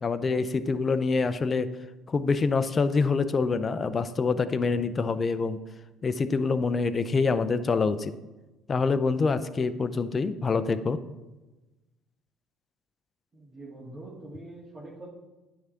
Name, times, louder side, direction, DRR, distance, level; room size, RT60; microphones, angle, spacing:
voice 1, 0.0-1.7 2.1-5.6 6.0-8.1 8.7-11.0, left 4 dB, 35° left, 12 dB, 0.6 m, -26 dB
voice 2, 13.3-15.1, right 2 dB, 30° right, -5 dB, 2.1 m, -44 dB
9.4 x 3.7 x 5.8 m, 1.1 s
supercardioid pair, 70°, 0 cm